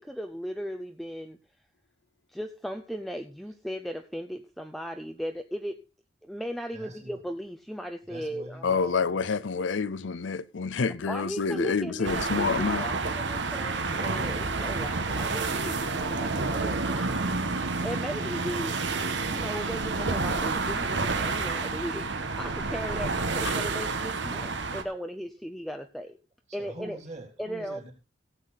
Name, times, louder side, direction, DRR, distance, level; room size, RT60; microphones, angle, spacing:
voice 1, 0.0-1.4 2.3-5.8 6.2-8.9 11.1-18.7 19.2-26.2 26.5-27.0 27.4-27.8, equal, ahead, 0.6 m, -37 dB
voice 2, 6.7-7.2 8.1-9.1 26.5-27.9, right 1 dB, 35° right, 3.5 m, -44 dB
voice 3, 8.6-12.9 23.4-23.5, left 5 dB, 80° left, 0.6 m, -28 dB
sound 1, 12.0-24.8, right 3 dB, 70° right, 1.3 m, -29 dB
16.5 x 8.2 x 4.0 m
head